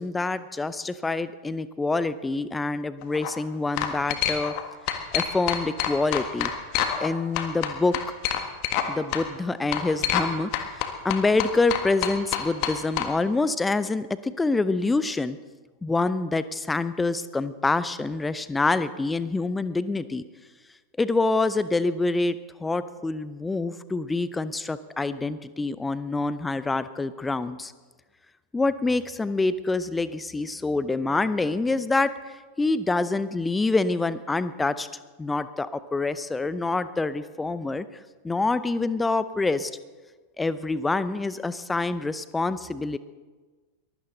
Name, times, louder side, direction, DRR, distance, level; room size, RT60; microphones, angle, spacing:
voice 1, 0.0-4.5 5.1-6.5 7.0-8.0 8.9-10.5 10.8-15.4 15.8-20.2 21.0-27.7 28.5-32.1 32.6-34.9 35.2-37.9 38.2-39.7 40.4-43.0, left 3 dB, 10° left, 15 dB, 0.7 m, -26 dB
sound 1, 3.0-3.3 3.8-4.6 4.9-7.1 7.4-8.9 9.1-9.2 9.7-10.3 10.5-13.1, left 10 dB, 45° left, 1.6 m, -26 dB
22.5 x 15.5 x 4.0 m, 1.3 s
figure-of-eight pair, 90°, 0 cm